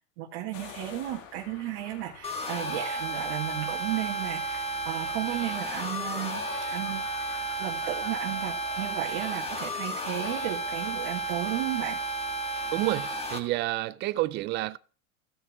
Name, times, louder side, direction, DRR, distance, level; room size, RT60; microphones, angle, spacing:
voice 1, 0.2-6.4 6.7-7.1 7.6-12.0, right 14 dB, 55° right, 1.9 m, -34 dB
sound 1, 0.5-13.7, left 7 dB, 55° left, 2.3 m, -48 dB
sound 2, 2.2-13.4, right 2 dB, 15° left, 1.6 m, -33 dB
voice 2, 12.7-14.8, right 18 dB, 30° right, 0.4 m, -29 dB
15.5 x 6.2 x 3.5 m
supercardioid pair, 130°, 40 cm